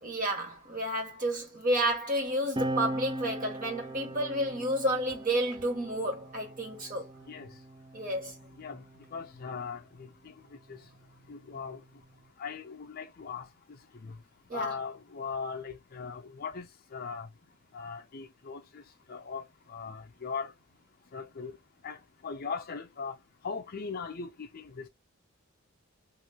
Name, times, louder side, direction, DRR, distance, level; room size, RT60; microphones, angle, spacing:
voice 1, 0.0-7.1 7.9-8.3 14.5-14.7, right 1 dB, 35° right, 1.4 m, -31 dB
sound 1, 2.6-9.5 10.4-12.3, right 1 dB, 20° right, 0.3 m, -40 dB
voice 2, 9.1-10.3 10.7-10.8 11.3-11.8 12.4-13.5 14.0-14.1 14.5-17.3 17.7-18.8 19.1-20.5 21.1-21.5 21.8-23.2 23.4-24.9, left 5 dB, 40° left, 0.5 m, -39 dB
3.1 x 3.1 x 2.2 m
head